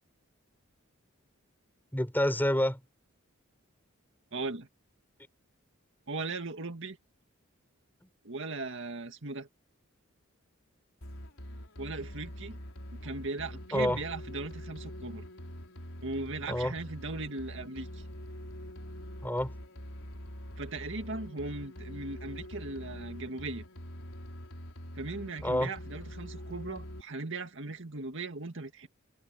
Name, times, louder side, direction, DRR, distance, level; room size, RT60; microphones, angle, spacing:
voice 1, 1.9-2.8 13.7-14.0 16.5-16.7 19.2-19.5 25.4-25.7, left 1 dB, 10° left, 3.8 m, -28 dB
voice 2, 4.3-4.7 6.1-7.0 8.2-9.5 11.8-12.6 13.0-15.2 16.0-18.0 20.6-23.6 25.0-28.9, right 3 dB, 65° right, 2.1 m, -38 dB
sound 1, 11.0-27.0, equal, 80° left, 4.7 m, -44 dB
head